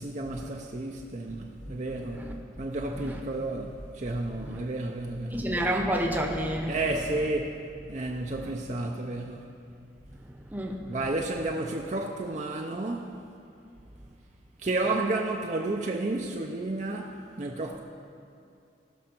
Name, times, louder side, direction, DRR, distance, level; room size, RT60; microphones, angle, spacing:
voice 1, 0.0-5.4 6.7-7.6 7.9-9.4 10.9-13.1 14.6-17.8, right 2 dB, 40° right, 1 dB, 0.5 m, -31 dB
voice 2, 2.9-3.2 4.4-4.6 5.3-6.7 10.2-11.0, right 1 dB, 10° right, 1 dB, 0.9 m, -30 dB
18.5 x 6.3 x 4.4 m, 2.5 s
head